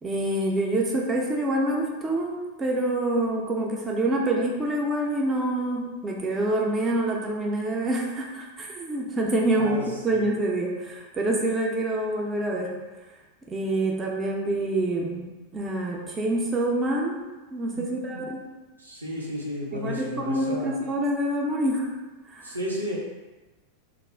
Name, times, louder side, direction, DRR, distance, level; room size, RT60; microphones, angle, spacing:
voice 1, 0.0-12.7 13.5-17.2 17.5-18.4 19.7-21.9 22.3-22.6, right 1 dB, 20° right, -1 dB, 0.4 m, -26 dB
voice 2, 9.5-10.3 17.7-18.3 18.8-20.7 22.4-23.0, left 1 dB, 80° right, -4 dB, 0.6 m, -33 dB
2.4 x 2.0 x 3.2 m, 1.2 s
figure-of-eight pair, 90°, 0 cm